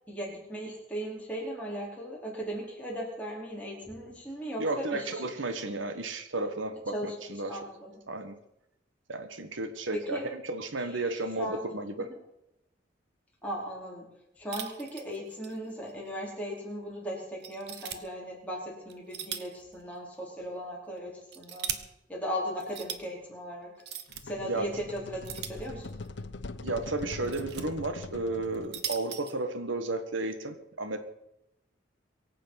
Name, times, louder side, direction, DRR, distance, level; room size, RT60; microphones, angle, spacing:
voice 1, 0.1-5.2 6.9-7.1 7.5-8.0 9.9-10.2 10.8-11.0 11.4-11.7 12.0-12.2 13.4-14.1 14.4-21.8 22.1-23.7 24.2-26.0, equal, 5° left, -4 dB, 4.5 m, -37 dB
voice 2, 4.6-7.6 8.1-8.3 9.1-12.1 24.4-24.7 26.6-31.0, right 2 dB, 90° right, 9 dB, 1.5 m, -33 dB
sound 1, 14.5-15.6 15.9-16.0 16.6-16.7 17.4-18.0 18.9-19.6 19.9-20.0 21.0-21.8 22.6-23.0 23.8-24.2 25.2-26.1 27.0-27.6 28.4-29.3, right 9 dB, 60° right, 1.2 m, -38 dB
sound 2, 24.1-29.0, left 3 dB, 70° left, 0.8 m, -42 dB
23.0 x 8.5 x 5.9 m, 0.86 s
head